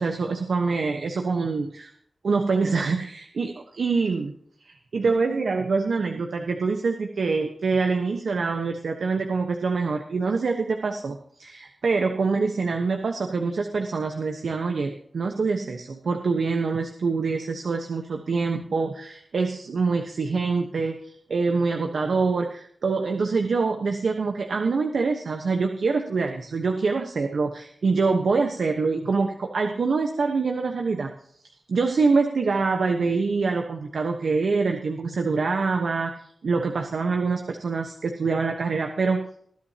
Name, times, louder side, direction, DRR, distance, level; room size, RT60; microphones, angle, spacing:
voice 1, 0.0-1.9 2.2-4.3 4.6-31.1 31.7-36.1 36.4-39.2, right 4 dB, 85° right, 4 dB, 1.2 m, -25 dB
20.0 x 11.5 x 2.9 m, 0.64 s
wide cardioid pair, 110°, 0 cm